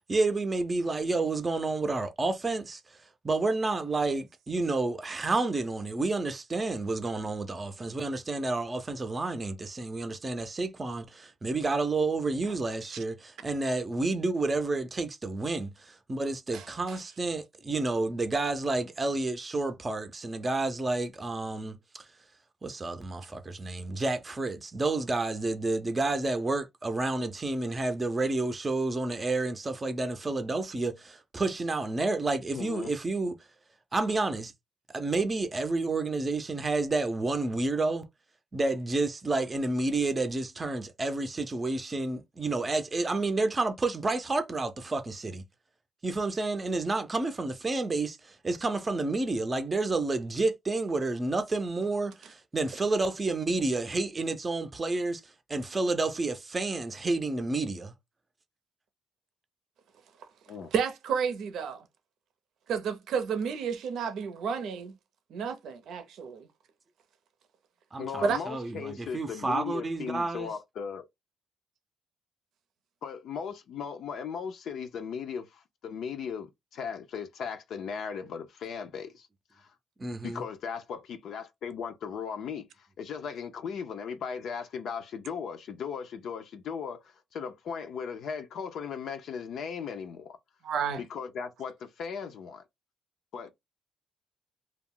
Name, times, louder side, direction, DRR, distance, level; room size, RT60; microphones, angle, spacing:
voice 1, 0.1-2.8 3.2-22.1 22.6-33.3 33.9-34.5 34.9-38.1 38.5-45.4 46.0-57.9 67.9-70.5 80.0-80.4, right 3 dB, 25° right, 0.5 m, -30 dB
voice 2, 32.5-32.9 60.5-60.7 68.0-71.1 73.0-79.3 79.5-79.7 80.2-90.4 91.0-92.6 93.3-93.5, left 6 dB, 70° left, 0.5 m, -37 dB
voice 3, 60.7-61.8 62.7-64.9 65.3-66.5 68.2-68.4 90.6-91.0, right 6 dB, 75° right, 0.6 m, -31 dB
2.3 x 2.0 x 3.6 m
cardioid pair, 90°, 0 cm